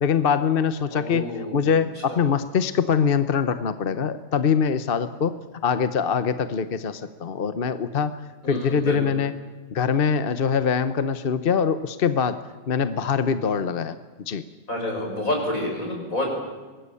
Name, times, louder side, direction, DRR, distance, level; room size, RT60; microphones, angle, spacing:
voice 1, 0.0-5.3 5.6-9.3 9.7-14.0 14.3-14.4, left 6 dB, 45° left, 12 dB, 1.0 m, -23 dB
voice 2, 0.9-1.6 2.1-2.2 8.4-8.9 14.7-16.3, left 1 dB, 85° left, 1 dB, 6.8 m, -28 dB
23.5 x 19.5 x 8.5 m, 1.3 s
omnidirectional pair, 1.4 m